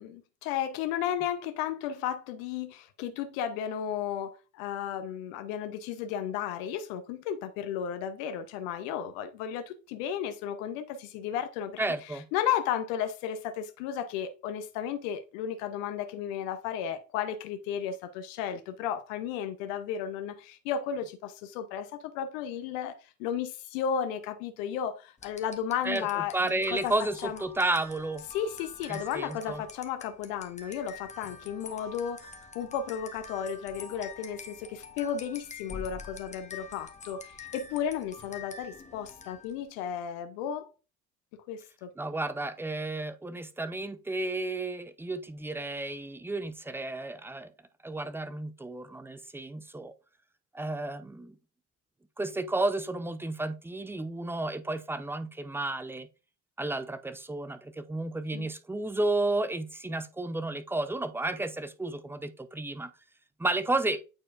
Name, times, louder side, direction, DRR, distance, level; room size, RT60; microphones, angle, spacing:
voice 1, 0.0-11.8 12.1-26.4 26.7-26.9 27.2-27.4 28.3-32.3 32.5-40.7 41.5-41.9 58.3-58.5, left 9 dB, 65° left, 0.8 m, -34 dB
voice 2, 11.8-12.3 25.8-28.2 28.9-29.6 42.0-47.5 47.8-49.9 50.5-51.4 52.2-56.1 56.6-62.9 63.4-64.0, right 2 dB, 5° right, 0.5 m, -32 dB
sound 1, 25.2-39.6, left 4 dB, 15° left, 1.0 m, -46 dB
8.6 x 4.5 x 2.4 m
hypercardioid pair, 65°, 41 cm